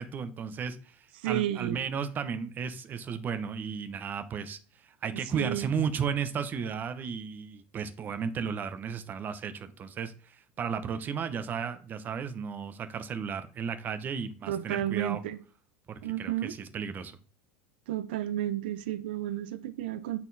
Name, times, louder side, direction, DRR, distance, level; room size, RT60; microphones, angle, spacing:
voice 1, 0.0-15.2 15.9-17.2, right 6 dB, 35° right, 1.1 m, -34 dB
voice 2, 1.2-1.8 5.3-5.6 14.5-15.4 16.0-16.5 17.9-20.2, right 12 dB, 80° right, 0.6 m, -32 dB
8.8 x 4.4 x 4.2 m
supercardioid pair, 115°, 5 cm